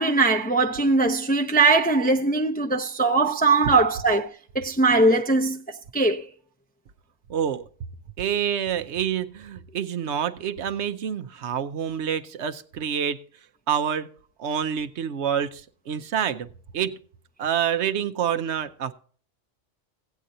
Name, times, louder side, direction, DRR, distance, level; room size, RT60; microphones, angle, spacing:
voice 1, 0.0-4.3 4.5-6.3, right 3 dB, 10° left, 0.5 m, -21 dB
voice 2, 7.3-7.7 8.2-13.2 13.7-14.1 14.4-16.5 16.7-17.0 17.4-18.9, right 8 dB, 65° right, 0.9 m, -27 dB
17.0 x 8.9 x 2.7 m
omnidirectional pair, 1.3 m